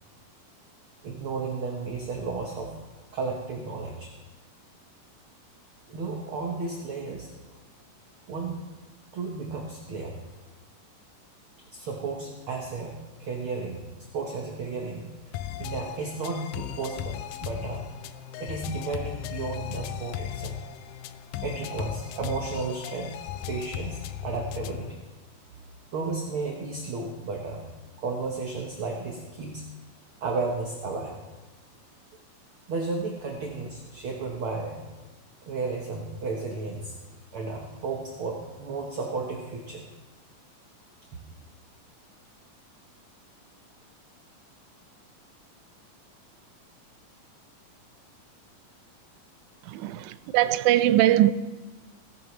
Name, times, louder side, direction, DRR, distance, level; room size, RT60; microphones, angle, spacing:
voice 1, 1.0-2.8 3.1-4.1 5.9-7.3 8.3-8.6 9.1-10.2 11.7-17.9 18.4-20.6 21.4-23.2 23.5-25.0 25.9-27.7 28.0-29.6 30.2-31.2 32.7-34.9 35.4-37.0 37.3-39.9, right 4 dB, 60° right, 1.4 m, -33 dB
sound 1, 15.3-24.9, left 11 dB, 80° left, 1.8 m, -37 dB
voice 2, 49.6-51.3, right 13 dB, 80° right, 1.8 m, -21 dB
17.5 x 12.0 x 3.2 m
omnidirectional pair, 3.9 m